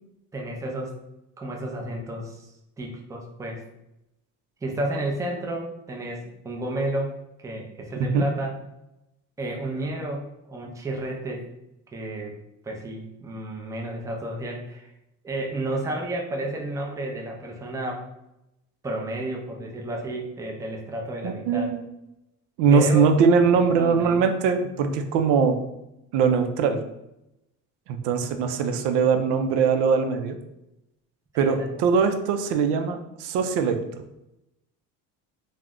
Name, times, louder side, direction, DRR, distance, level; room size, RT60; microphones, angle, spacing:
voice 1, 0.3-1.0 1.4-2.5 2.8-3.6 4.6-8.6 9.4-11.5 11.9-12.4 12.6-14.9 15.2-18.0 18.8-21.7 22.7-23.0 23.5-24.2 31.3-31.6, right 1 dB, 10° right, 0 dB, 0.4 m, -31 dB
voice 2, 21.2-21.8 22.6-25.6 26.1-26.8 27.9-30.4 31.3-33.8, right 5 dB, 75° right, 6 dB, 0.5 m, -21 dB
2.4 x 2.1 x 3.5 m, 0.88 s
supercardioid pair, 90°, 42 cm